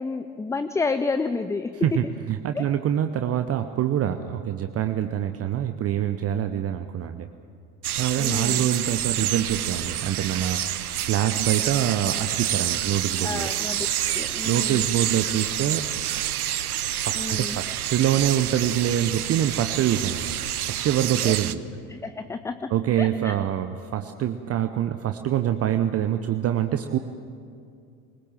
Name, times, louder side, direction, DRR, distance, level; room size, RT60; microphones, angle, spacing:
voice 1, 0.0-1.7 2.6-2.7 8.2-8.6 13.2-14.9 17.1-17.6 21.2-21.3 21.9-22.7 23.0-23.3, left 4 dB, 5° left, 11 dB, 0.4 m, -30 dB
voice 2, 1.7-7.3 8.0-13.5 14.4-15.8 16.9-20.3 20.6-21.6 22.7-27.0, right 11 dB, 30° right, 8 dB, 0.8 m, -25 dB
sound 1, 7.8-21.5, right 12 dB, 75° right, 0.7 m, -28 dB
22.0 x 20.5 x 7.4 m, 2.4 s
figure-of-eight pair, 65°, 45 cm